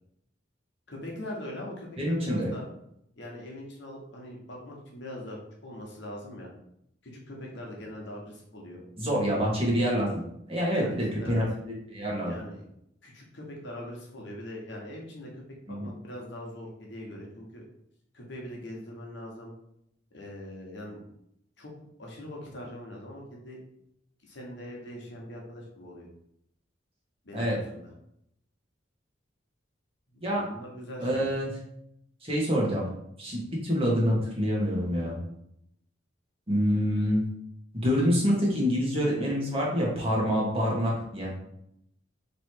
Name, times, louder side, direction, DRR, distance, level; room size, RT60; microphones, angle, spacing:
voice 1, 0.9-2.6 3.2-5.4 5.6-6.5 7.0-8.8 10.7-10.9 11.2-11.4 12.2-12.7 13.0-15.4 15.7-17.6 18.1-19.5 20.1-21.0 21.6-21.7 22.0-23.6 24.3-26.1 27.2-27.9 30.1-31.3, left 1 dB, 65° left, -1 dB, 1.1 m, -42 dB
voice 2, 2.0-2.5 9.0-10.1 10.5-12.3 15.7-15.9 27.3-27.6 30.2-30.4 31.0-31.5 32.2-32.9 33.2-35.2 36.5-37.2 37.8-41.3, equal, 30° right, -4 dB, 1.3 m, -26 dB
3.2 x 3.0 x 4.4 m, 0.76 s
head